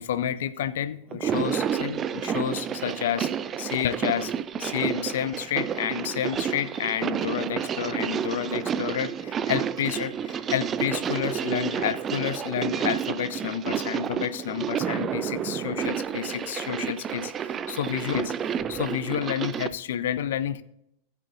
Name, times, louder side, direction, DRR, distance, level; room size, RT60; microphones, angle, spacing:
voice 1, 0.0-3.3 3.6-4.3 4.6-20.6, left 10 dB, 60° left, 15 dB, 0.5 m, -30 dB
sound 1, 1.1-19.7, right 8 dB, 25° right, 0.4 m, -30 dB
15.0 x 7.5 x 2.5 m, 0.76 s
figure-of-eight pair, 90°, 0 cm